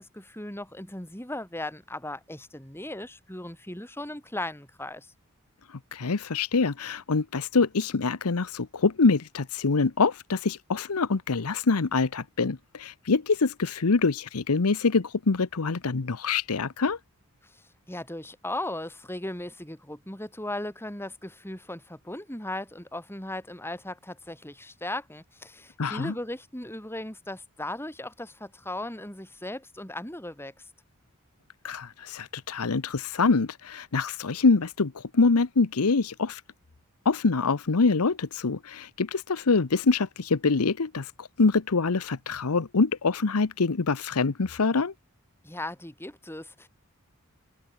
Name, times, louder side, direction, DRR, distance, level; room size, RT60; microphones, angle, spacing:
voice 1, 0.0-5.1 17.4-30.7 45.4-46.7, left 1 dB, 10° left, 4.5 m, -37 dB
voice 2, 5.9-17.0 25.8-26.1 31.6-36.4 37.0-44.9, left 4 dB, 85° left, 0.9 m, -25 dB
head